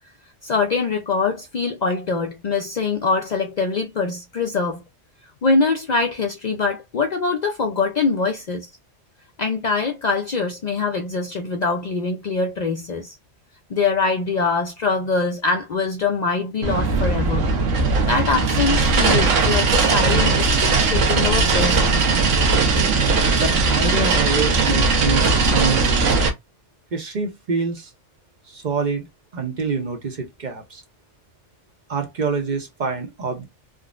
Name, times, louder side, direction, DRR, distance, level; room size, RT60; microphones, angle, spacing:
voice 1, 0.4-4.8 5.4-8.7 9.4-13.1 13.7-17.5 18.0-22.0, left 4 dB, 65° left, 0.4 m, -23 dB
sound 1, 16.6-26.3, right 3 dB, 85° right, 1.1 m, -18 dB
voice 2, 23.3-26.1 26.9-27.9 28.5-29.1 29.3-30.8 31.9-33.5, right 4 dB, 45° right, 0.7 m, -26 dB
3.6 x 2.0 x 2.4 m
omnidirectional pair, 1.2 m